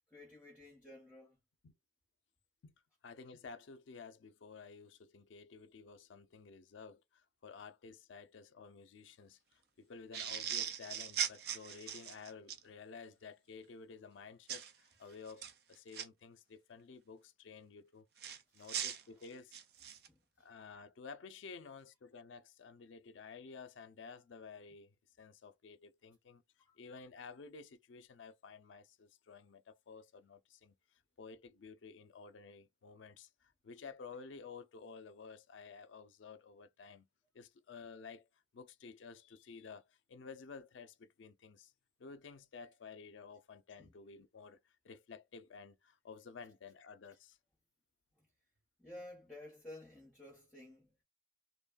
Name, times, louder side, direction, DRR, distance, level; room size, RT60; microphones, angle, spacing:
voice 1, 0.1-1.4 18.5-19.0 19.3-19.4 20.1-20.5 26.7-26.8 43.8-43.9 48.2-48.3 48.8-50.9, left 1 dB, 5° left, 0.9 m, -54 dB
voice 2, 3.0-18.1 18.5-19.5 20.4-26.4 26.8-30.7 31.2-37.1 37.3-41.7 42.0-47.4, left 5 dB, 80° left, 0.4 m, -53 dB
sound 1, 10.1-12.6 14.5-14.7 15.3-16.0 18.2-20.1, right 9 dB, 55° right, 0.5 m, -39 dB
3.1 x 2.2 x 2.3 m
head